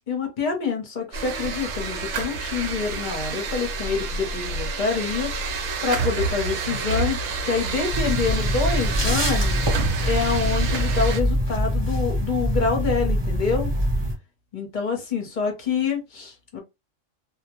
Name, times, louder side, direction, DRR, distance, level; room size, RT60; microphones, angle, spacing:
voice 1, 0.1-5.3 5.8-9.6 10.0-13.7 14.5-16.6, left 5 dB, 45° left, 0.8 m, -26 dB
sound 1, 1.1-11.2, right 3 dB, 70° right, 0.9 m, -28 dB
sound 2, 7.9-14.1, equal, 25° right, 0.8 m, -24 dB
2.3 x 2.1 x 2.9 m
omnidirectional pair, 1.3 m